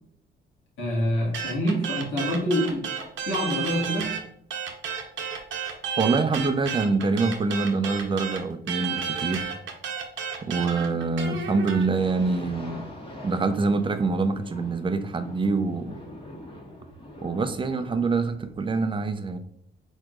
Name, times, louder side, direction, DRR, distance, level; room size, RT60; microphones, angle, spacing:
voice 1, 0.8-2.9 3.3-4.1, equal, 85° left, -3 dB, 1.7 m, -26 dB
sound 1, 1.3-4.2 4.5-11.8, right 7 dB, 75° right, 0.8 m, -32 dB
voice 2, 6.0-9.5 10.4-12.8 13.2-16.0 17.2-19.4, right 4 dB, 25° right, 10 dB, 0.5 m, -25 dB
sound 2, 11.7-18.7, left 1 dB, 25° left, 1.2 m, -44 dB
4.5 x 3.6 x 2.4 m, 0.67 s
cardioid pair, 90°, 20 cm